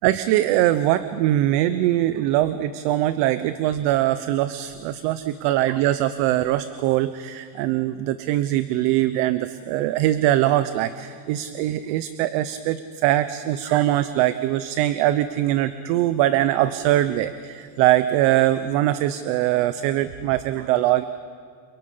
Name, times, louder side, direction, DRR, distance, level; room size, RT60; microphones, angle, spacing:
voice 1, 0.0-21.0, right 14 dB, 65° right, 12 dB, 0.9 m, -22 dB
29.5 x 23.0 x 5.7 m, 2.2 s
cardioid pair, 175°, 48 cm